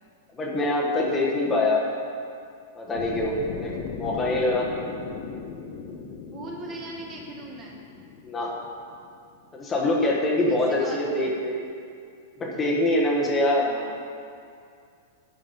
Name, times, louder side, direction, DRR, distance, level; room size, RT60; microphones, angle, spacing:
voice 1, 0.3-1.8 2.8-4.7 8.2-8.5 9.5-11.6 12.4-13.7, left 1 dB, 15° left, -2 dB, 1.4 m, -24 dB
sound 1, 2.9-9.0, left 5 dB, 35° left, 1.0 m, -37 dB
voice 2, 6.2-7.8 10.5-11.5 13.5-14.0, right 2 dB, 25° right, 0 dB, 1.2 m, -40 dB
11.5 x 5.4 x 5.5 m, 2.3 s
supercardioid pair, 155°, 0 cm